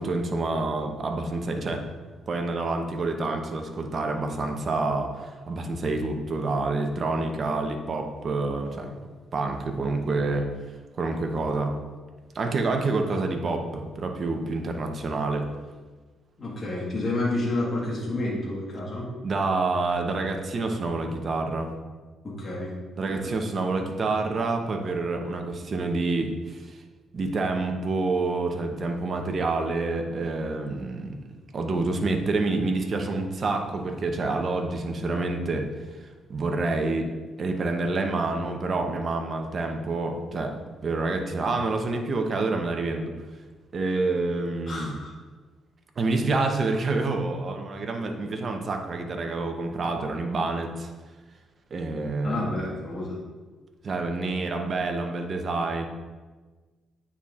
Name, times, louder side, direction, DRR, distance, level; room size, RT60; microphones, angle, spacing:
voice 1, 0.0-1.8 2.3-8.9 9.3-10.5 11.0-11.8 12.3-15.5 19.2-21.7 23.0-26.8 27.1-37.1 37.4-40.6 40.8-43.1 43.7-45.0 46.0-50.9 51.7-52.5 53.8-55.9, right 3 dB, 45° right, 4 dB, 0.8 m, -28 dB
voice 2, 16.4-19.1 22.2-22.7 23.1-23.4 44.7-45.1 52.2-53.2, left 2 dB, 40° left, -6 dB, 1.6 m, -30 dB
9.1 x 4.2 x 2.5 m, 1.3 s
cardioid pair, 90°, 0 cm